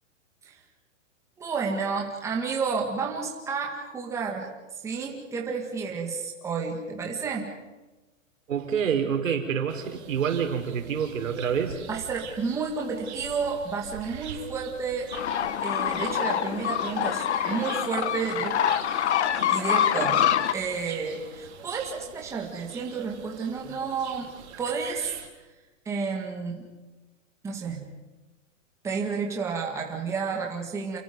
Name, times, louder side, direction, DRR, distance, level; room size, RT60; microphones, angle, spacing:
voice 1, 1.4-4.5 4.8-7.6 11.9-15.1 15.6-18.6 19.5-20.2 20.5-24.3 24.6-25.1 25.9-26.7 27.4-27.9 28.8-31.0, right 5 dB, 5° right, -1 dB, 2.1 m, -31 dB
voice 2, 8.5-11.8, right 7 dB, 80° right, 5 dB, 4.1 m, -27 dB
sound 1, 9.7-25.3, right 9 dB, 55° right, 3.3 m, -44 dB
sound 2, 15.1-20.5, left 10 dB, 60° left, 1.2 m, -25 dB
29.0 x 22.5 x 5.4 m, 1.1 s
hypercardioid pair, 165°, 39 cm